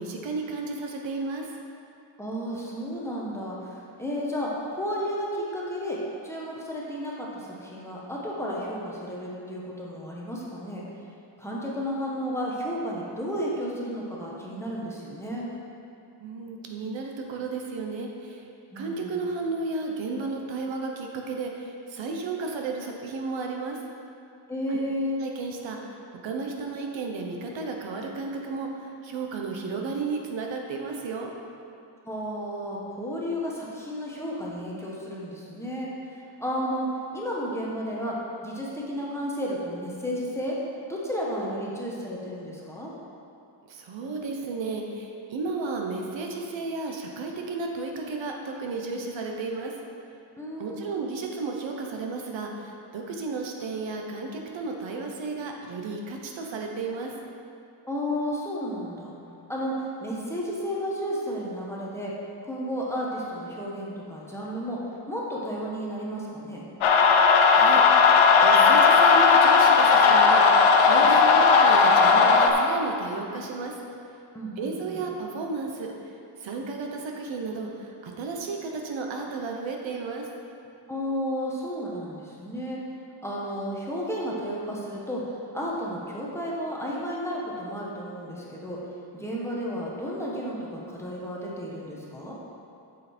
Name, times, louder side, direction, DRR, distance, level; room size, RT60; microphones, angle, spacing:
voice 1, 0.0-1.5 16.2-18.5 18.7-23.8 24.7-24.8 25.2-26.0 26.2-31.3 43.7-49.7 50.6-57.1 67.4-73.8 74.6-75.9 76.4-80.3, right 3 dB, 70° right, 1 dB, 1.1 m, -33 dB
voice 2, 2.2-6.0 6.2-10.8 11.4-15.5 18.7-19.2 24.5-25.2 32.0-35.9 36.4-36.9 37.1-38.1 38.4-40.5 40.9-42.9 50.4-51.0 57.8-59.2 59.5-62.1 62.4-64.8 65.1-66.6 74.3-75.0 80.9-82.8 83.2-85.2 85.5-88.8 89.1-92.3, equal, 5° left, -5 dB, 1.1 m, -32 dB
sound 1, 66.8-72.5, left 5 dB, 80° left, 0.9 m, -17 dB
8.6 x 6.8 x 4.4 m, 2.6 s
wide cardioid pair, 175°, 47 cm